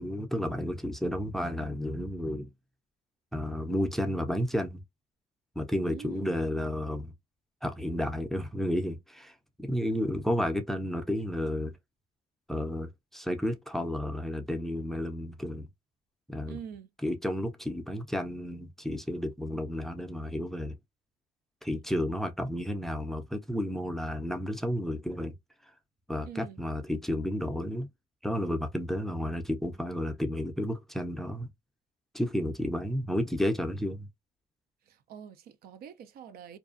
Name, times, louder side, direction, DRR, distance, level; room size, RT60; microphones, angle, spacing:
voice 1, 0.0-2.5 3.3-4.8 5.6-7.1 7.6-11.7 12.5-15.7 16.3-16.6 17.0-20.8 21.6-25.3 26.1-27.9 28.2-31.5 32.1-34.1, equal, ahead, 0.5 m, -32 dB
voice 2, 5.8-6.2 16.5-16.9 26.2-26.6 34.8-36.6, right 8 dB, 65° right, 0.5 m, -45 dB
2.5 x 2.3 x 2.4 m
cardioid pair, 110°, 17 cm